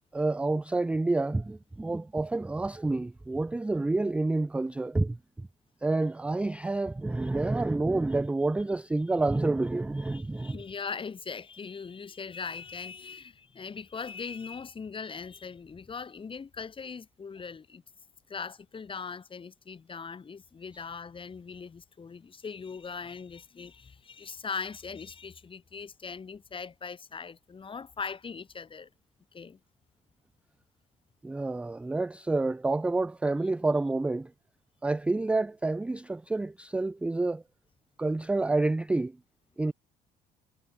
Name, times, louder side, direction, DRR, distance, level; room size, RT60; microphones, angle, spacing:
voice 1, 0.1-5.5 5.8-10.6 31.2-34.3 34.8-37.4 38.0-39.2 39.6-39.7, right 2 dB, 5° right, 0.3 m, -28 dB
voice 2, 10.0-17.8 18.3-28.9 29.3-29.6, left 5 dB, 30° left, 5.3 m, -40 dB
cardioid pair, 110°, 17 cm